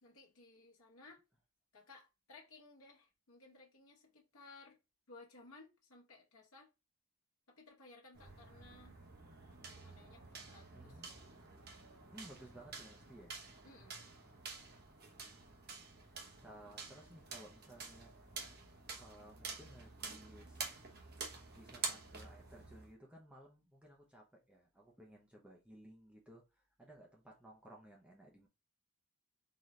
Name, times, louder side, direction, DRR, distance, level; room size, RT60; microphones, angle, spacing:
voice 1, 0.0-1.2 1.7-4.8 5.1-6.7 7.5-9.0 9.6-11.3 13.6-14.1, left 3 dB, 70° left, 1.0 m, -59 dB
sound 1, 8.1-22.9, right 4 dB, 45° right, 0.9 m, -49 dB
voice 2, 10.7-11.1 12.1-13.3 14.4-14.8 16.4-18.1 19.0-20.7 21.5-28.5, right 1 dB, 5° right, 0.7 m, -58 dB
4.0 x 2.9 x 3.2 m
head